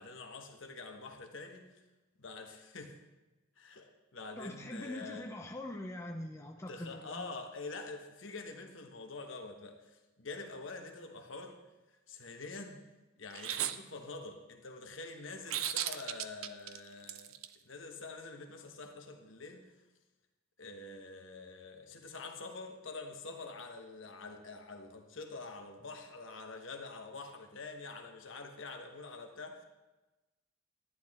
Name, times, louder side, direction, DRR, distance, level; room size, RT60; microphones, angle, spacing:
voice 1, 0.0-1.7 2.2-3.0 3.6-5.3 6.7-11.6 12.1-12.8 13.2-17.4 17.6-19.7 20.6-29.6, left 3 dB, 70° left, 4 dB, 1.2 m, -46 dB
voice 2, 4.4-7.3, left 1 dB, 15° left, 2 dB, 0.7 m, -43 dB
sound 1, 13.3-13.8 15.5-17.5, right 11 dB, 85° right, 0.5 m, -35 dB
11.5 x 10.0 x 3.7 m, 1.1 s
head